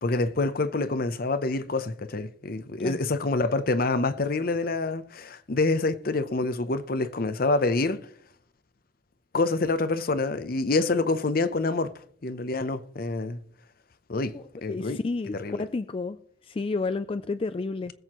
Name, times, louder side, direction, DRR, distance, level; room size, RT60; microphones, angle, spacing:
voice 1, 0.0-8.0 9.3-11.9 12.2-13.4 14.1-14.4 14.6-15.0 15.3-15.6, left 3 dB, 50° left, 0.7 m, -26 dB
voice 2, 14.3-16.2 16.4-17.9, left 3 dB, 30° left, 0.3 m, -31 dB
21.0 x 7.9 x 3.0 m
head